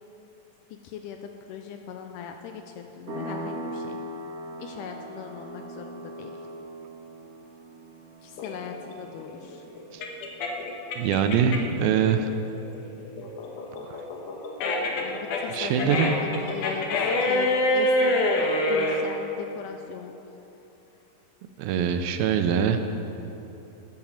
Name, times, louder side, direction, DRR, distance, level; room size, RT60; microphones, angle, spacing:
voice 1, 0.7-4.0 4.6-6.4 8.2-9.7 15.0-18.2 18.7-20.2, left 7 dB, 90° left, 4 dB, 1.9 m, -39 dB
sound 1, 3.1-11.4, right 1 dB, 65° right, 0.9 m, -40 dB
sound 2, 8.4-11.8 12.2-19.0, left 1 dB, 65° left, 2.4 m, -26 dB
voice 2, 11.0-12.3 13.9-14.0 15.5-16.1 21.6-22.8, right 7 dB, 80° right, 7 dB, 2.5 m, -23 dB
10.5 x 8.8 x 7.3 m, 3.0 s
omnidirectional pair, 4.3 m